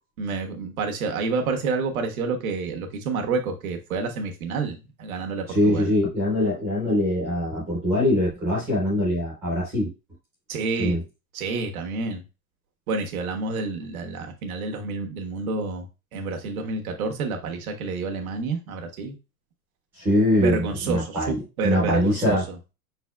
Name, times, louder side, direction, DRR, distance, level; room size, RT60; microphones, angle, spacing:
voice 1, 0.2-5.9 10.5-11.0 11.3-12.2 12.9-15.9 16.1-19.2 20.4-22.6, right 4 dB, 80° right, 3 dB, 1.3 m, -29 dB
voice 2, 5.5-9.9 10.8-11.0 20.0-22.4, left 1 dB, 5° right, -5 dB, 0.4 m, -23 dB
5.7 x 4.0 x 2.3 m, 0.28 s
supercardioid pair, 180°, 42 cm